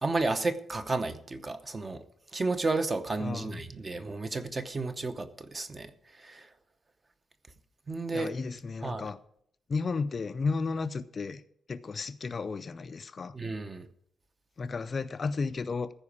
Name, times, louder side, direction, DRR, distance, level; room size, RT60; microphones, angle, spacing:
voice 1, 0.0-2.0 2.3-5.9 6.2-6.5 7.9-8.3 8.8-9.1 13.3-13.9, right 3 dB, 20° right, 0.8 m, -32 dB
voice 2, 3.2-3.6 8.1-9.2 9.7-11.4 11.7-13.3 14.6-15.9, left 4 dB, 30° left, 0.4 m, -33 dB
14.5 x 5.1 x 8.5 m
wide cardioid pair, 165°, 0 cm